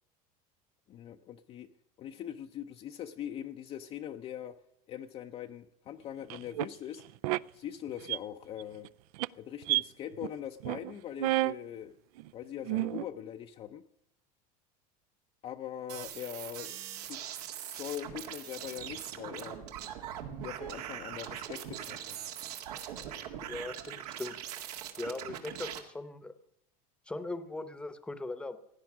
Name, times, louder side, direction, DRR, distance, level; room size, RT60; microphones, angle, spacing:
voice 1, 0.9-1.7 2.0-4.6 4.9-7.0 7.5-8.9 9.4-11.9 12.3-13.8 15.4-17.2 17.7-19.6 20.4-22.3, left 10 dB, 30° left, 6 dB, 0.5 m, -42 dB
sound 1, 6.3-6.7 7.2-7.4 7.9-8.2 8.6-8.9 9.1-9.3 9.6-9.8 10.2-10.3 10.6-10.9 11.2-11.5 12.2-12.3 12.7-13.0, right 18 dB, 75° right, 0.4 m, -30 dB
sound 2, 15.9-25.8, right 10 dB, 90° right, 2.0 m, -41 dB
voice 2, 23.5-24.3 25.0-26.3 27.1-28.6, left 2 dB, 5° left, 12 dB, 0.8 m, -39 dB
16.5 x 10.0 x 6.1 m, 0.81 s
supercardioid pair, 145°, 19 cm